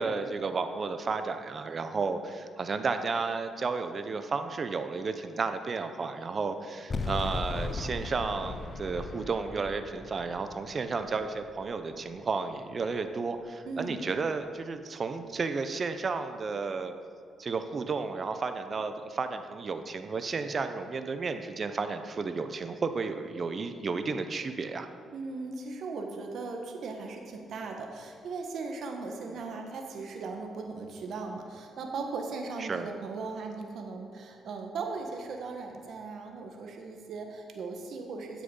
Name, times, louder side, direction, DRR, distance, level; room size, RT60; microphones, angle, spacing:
voice 1, 0.0-16.9 17.4-24.9 29.3-29.4 32.6-32.9, right 4 dB, 40° right, 8 dB, 0.8 m, -32 dB
sound 1, 6.9-12.1, left 3 dB, 35° left, 0.7 m, -38 dB
voice 2, 13.6-14.0 25.1-38.4, right 4 dB, 65° right, 3 dB, 1.5 m, -38 dB
10.0 x 7.7 x 5.6 m, 2.3 s
cardioid pair, 90°, 0 cm